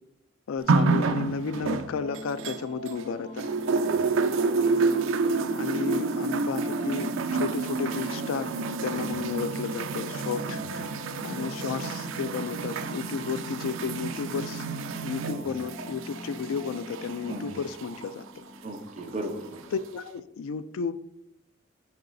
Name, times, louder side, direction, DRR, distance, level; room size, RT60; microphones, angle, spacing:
voice 1, 0.5-3.6 5.5-8.6 8.8-14.7 15.0-18.4 19.7-21.1, left 5 dB, 75° left, 14 dB, 0.3 m, -33 dB
sound 1, 0.6-19.8, left 2 dB, 40° left, 1.9 m, -43 dB
sound 2, 0.7-3.0 3.4-18.1 19.0-19.1, right 4 dB, 65° right, 0.4 m, -29 dB
voice 2, 10.4-10.7 15.3-15.6 17.3-17.5 18.6-19.6, right 1 dB, 30° right, 2 dB, 0.8 m, -37 dB
9.2 x 4.8 x 2.6 m, 0.82 s
head